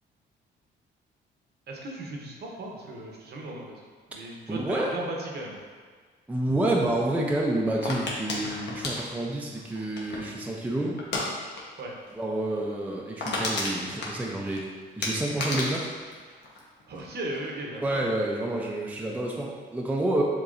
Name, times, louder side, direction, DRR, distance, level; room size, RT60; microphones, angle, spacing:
voice 1, 1.7-3.7 4.1-5.6 10.4-10.5 11.8-11.9 16.9-18.0, right 2 dB, 55° right, -1 dB, 0.9 m, -36 dB
voice 2, 4.5-4.9 6.3-11.0 12.1-14.7 15.0-15.9 16.3-16.4 17.8-20.2, right 1 dB, 5° right, -2 dB, 0.5 m, -28 dB
sound 1, 7.8-10.4 11.0-11.3 11.6-11.8 12.1-12.2 12.6-12.7 12.9-14.6 15.0-17.0 17.3-17.8, left 2 dB, 60° left, 1.0 m, -32 dB
6.5 x 3.0 x 2.6 m, 1.5 s
cardioid pair, 90°, 20 cm